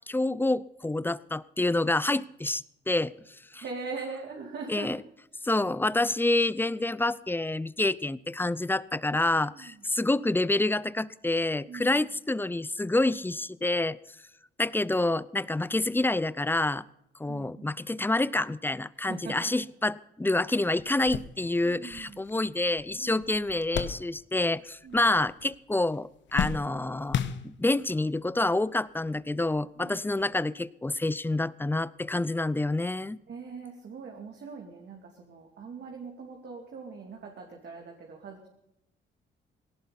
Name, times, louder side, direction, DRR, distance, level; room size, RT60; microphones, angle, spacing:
voice 1, 0.1-3.1 3.5-3.6 4.7-5.0 5.4-14.0 14.6-16.8 17.2-33.2, left 2 dB, 10° left, 19 dB, 0.6 m, -28 dB
voice 2, 3.5-4.9 9.1-9.2 9.5-9.8 11.7-12.0 17.3-17.7 18.9-19.6 21.6-22.2 22.9-23.2 24.8-25.1 29.8-30.2 33.3-38.5, right 4 dB, 60° right, 1 dB, 2.7 m, -42 dB
sound 1, 20.3-20.4 20.8-24.6 24.8-25.6 25.9-27.9 28.7-28.8 30.1-30.2, left 8 dB, 65° left, 1.1 m, -35 dB
18.5 x 17.0 x 4.1 m, 0.82 s
cardioid pair, 90°, 20 cm